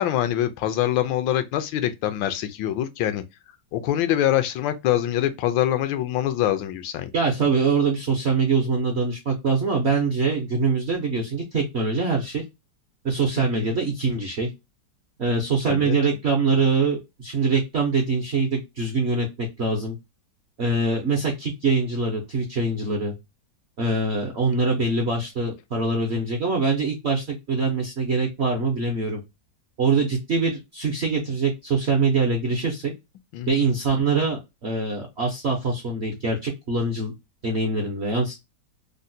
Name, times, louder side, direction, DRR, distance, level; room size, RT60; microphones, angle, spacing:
voice 1, 0.0-3.2 3.7-7.1 13.4-13.7 15.7-16.0 33.3-33.7, left 12 dB, 85° left, 1.3 m, -24 dB
voice 2, 7.1-12.4 13.0-14.5 15.2-20.0 20.6-23.1 23.8-29.2 29.8-32.9 33.5-37.1 37.4-38.4, right 3 dB, 65° right, 0.6 m, -24 dB
3.8 x 2.1 x 2.6 m
omnidirectional pair, 2.0 m